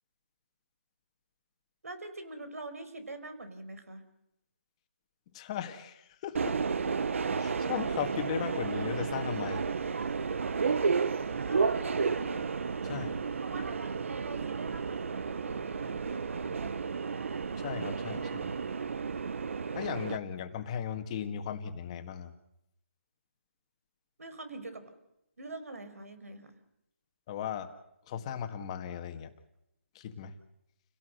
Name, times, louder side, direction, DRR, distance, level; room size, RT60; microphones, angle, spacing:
voice 1, 1.8-4.0 11.5-12.5 13.4-16.8 24.2-24.9 25.4-26.5, right 2 dB, 85° right, 10 dB, 5.2 m, -44 dB
voice 2, 5.3-6.6 7.4-9.7 12.8-13.2 17.6-18.6 19.8-22.3 27.3-27.7 28.1-29.3 30.0-30.4, left 8 dB, 25° left, 7 dB, 1.8 m, -37 dB
Subway metro underground, 6.3-20.2, right 5 dB, 60° right, 1.0 m, -32 dB
29.5 x 17.5 x 6.7 m, 0.81 s
hypercardioid pair, 165°, 8 cm